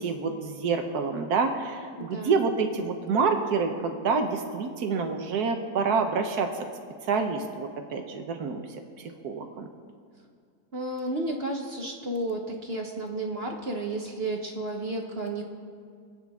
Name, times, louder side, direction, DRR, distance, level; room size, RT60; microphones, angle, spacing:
voice 1, 0.0-6.5 7.1-8.6 9.0-9.7, right 5 dB, 85° right, 5 dB, 1.5 m, -27 dB
voice 2, 2.0-2.5 10.7-15.4, right 2 dB, 45° right, 2 dB, 1.2 m, -32 dB
27.0 x 9.1 x 3.6 m, 2.2 s
omnidirectional pair, 1.6 m